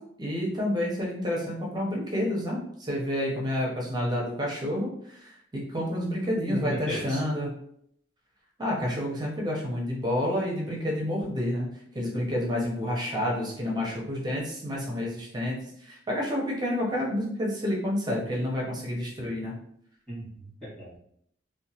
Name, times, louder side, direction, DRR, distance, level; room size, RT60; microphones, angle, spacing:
voice 1, 0.2-7.5 8.6-11.7 11.9-19.6, left 1 dB, 20° right, -3 dB, 0.6 m, -29 dB
voice 2, 6.5-7.2 20.1-21.0, equal, 5° left, -10 dB, 1.4 m, -35 dB
2.8 x 2.1 x 2.7 m, 0.69 s
head